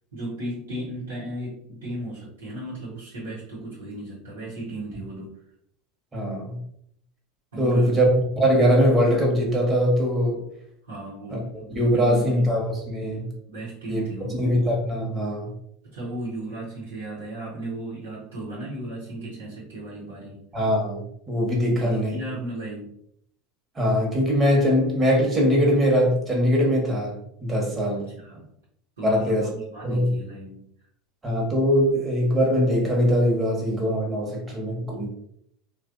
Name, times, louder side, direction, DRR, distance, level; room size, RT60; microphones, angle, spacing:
voice 1, 0.1-5.3 7.5-8.0 10.8-12.6 13.5-14.5 15.8-20.4 21.7-22.9 28.0-28.5 29.0-30.6, right 1 dB, 80° right, -9 dB, 1.2 m, -35 dB
voice 2, 6.1-6.6 7.6-10.4 11.3-11.4 11.8-13.3 13.9-14.0 14.4-15.5 20.5-22.2 23.7-27.2 27.4-28.0 29.0-29.5 29.8-30.1 31.2-35.1, equal, 20° right, -1 dB, 1.3 m, -22 dB
3.1 x 2.5 x 2.6 m, 0.70 s
hypercardioid pair, 80°, 0 cm